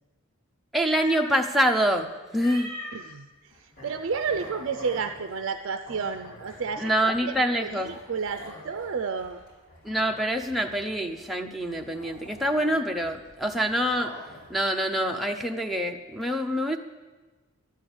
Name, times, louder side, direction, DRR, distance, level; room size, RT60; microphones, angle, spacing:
voice 1, 0.7-2.7 6.8-8.0 9.8-14.1 14.5-16.8, equal, ahead, 1 dB, 0.6 m, -26 dB
sound 1, 0.9-1.3 2.3-3.0 3.5-14.5, left 1 dB, 35° left, 4.8 m, -45 dB
voice 2, 2.9-7.3 7.6-9.4, right 5 dB, 55° right, 8 dB, 0.4 m, -31 dB
12.0 x 9.1 x 7.0 m, 1.3 s
head